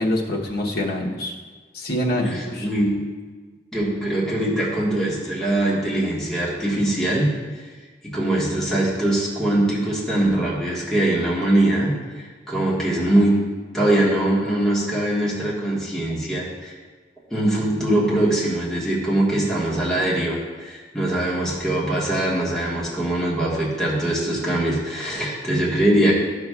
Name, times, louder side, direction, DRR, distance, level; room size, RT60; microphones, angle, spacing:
voice 1, 0.0-1.3 1.7-2.7, left 1 dB, 60° left, -2 dB, 1.0 m, -25 dB
voice 2, 2.2-3.0 3.7-7.3 8.0-11.9 12.5-13.3 13.7-16.7 17.3-26.1, right 1 dB, 5° left, -7 dB, 1.5 m, -22 dB
11.5 x 6.0 x 2.4 m, 1.4 s
head